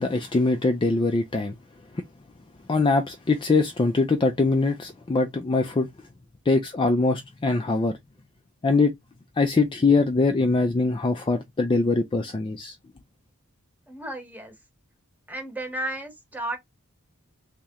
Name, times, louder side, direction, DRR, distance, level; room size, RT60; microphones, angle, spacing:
voice 1, 0.0-1.5 1.9-2.0 2.7-5.9 6.5-7.9 8.6-8.9 9.4-12.8, left 3 dB, 20° left, 0.3 m, -22 dB
voice 2, 13.9-14.5 15.3-16.6, right 1 dB, 5° right, 1.0 m, -33 dB
3.1 x 2.8 x 3.5 m
head